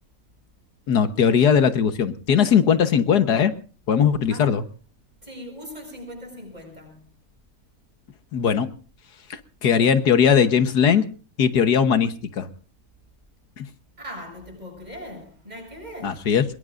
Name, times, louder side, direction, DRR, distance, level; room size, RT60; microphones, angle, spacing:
voice 1, 0.9-3.5 3.9-4.6 8.3-8.7 9.3-11.0 11.4-12.5 13.6-13.7 16.0-16.4, left 7 dB, 75° left, 1.7 m, -19 dB
voice 2, 5.2-7.1 14.0-16.3, equal, 25° right, 7.1 m, -40 dB
23.0 x 22.0 x 2.5 m
omnidirectional pair, 1.7 m